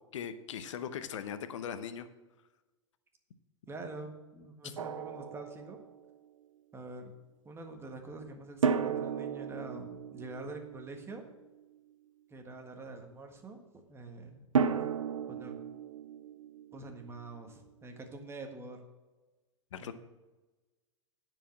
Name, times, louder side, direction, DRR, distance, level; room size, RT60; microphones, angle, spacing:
voice 1, 0.1-2.1 19.7-19.9, left 8 dB, 70° left, 11 dB, 0.8 m, -39 dB
voice 2, 3.7-5.8 6.7-7.1 7.4-11.2 12.3-13.6 13.9-14.4 15.3-15.5 16.7-18.8 19.8-19.9, right 2 dB, 15° right, 4 dB, 1.6 m, -45 dB
Drum, 4.8-6.1 8.6-11.6 14.6-17.4, right 6 dB, 85° right, 0.6 m, -34 dB
10.0 x 5.0 x 7.4 m, 1.2 s
hypercardioid pair, 100°, 16 cm